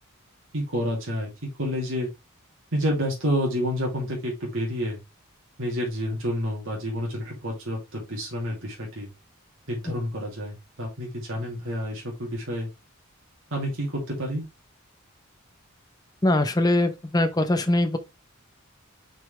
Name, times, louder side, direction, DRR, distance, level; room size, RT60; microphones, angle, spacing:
voice 1, 0.5-1.3 1.6-2.1 2.7-5.0 5.6-9.1 9.7-12.7 13.5-14.4, equal, 65° right, 2.7 m, -29 dB
voice 2, 16.2-18.0, left 1 dB, 20° left, 0.7 m, -22 dB
6.2 x 5.2 x 3.2 m
head